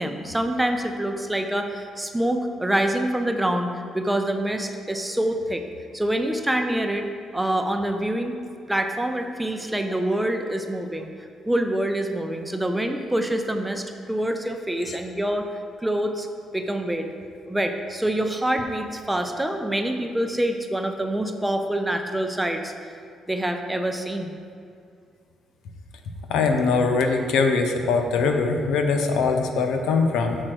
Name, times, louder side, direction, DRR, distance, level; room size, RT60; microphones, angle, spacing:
voice 1, 0.0-5.6 5.9-7.1 7.3-8.4 8.7-11.1 11.5-15.5 15.8-16.3 16.5-17.1 17.5-22.7 23.3-24.3, right 1 dB, 10° right, 5 dB, 0.6 m, -26 dB
voice 2, 26.3-30.4, left 4 dB, 85° left, 5 dB, 0.6 m, -22 dB
6.3 x 4.3 x 6.2 m, 2.3 s
cardioid pair, 90°, 0 cm